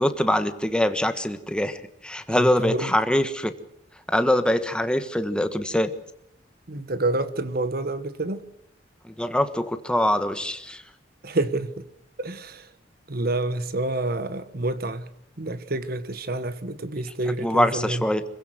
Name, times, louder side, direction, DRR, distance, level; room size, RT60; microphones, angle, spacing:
voice 1, 0.0-3.5 4.1-5.9 9.0-10.8 17.4-18.2, left 1 dB, 5° left, 1.3 m, -23 dB
voice 2, 2.3-2.9 6.7-8.4 11.2-11.9 12.2-12.7 13.1-15.1 15.4-18.0, right 2 dB, 55° right, 1.4 m, -28 dB
26.0 x 16.0 x 7.8 m
head